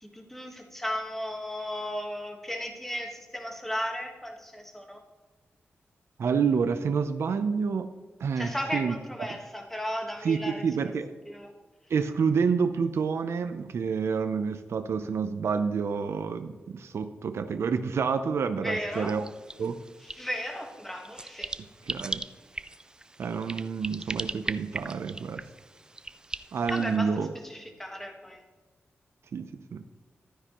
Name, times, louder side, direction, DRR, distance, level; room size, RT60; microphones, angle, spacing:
voice 1, 0.0-5.0 8.4-10.6 11.2-11.5 18.6-19.2 20.0-21.5 26.7-28.4, equal, 5° left, 2 dB, 1.4 m, -35 dB
voice 2, 6.2-7.9 8.2-9.0 10.2-11.1 11.9-19.2 19.6-19.8 21.9-22.2 23.2-25.4 26.5-27.3 29.3-29.8, right 6 dB, 75° right, 9 dB, 0.6 m, -28 dB
sound 1, 18.9-27.0, right 2 dB, 20° right, 0.3 m, -39 dB
12.5 x 9.7 x 3.0 m, 1.3 s
wide cardioid pair, 135°, 4 cm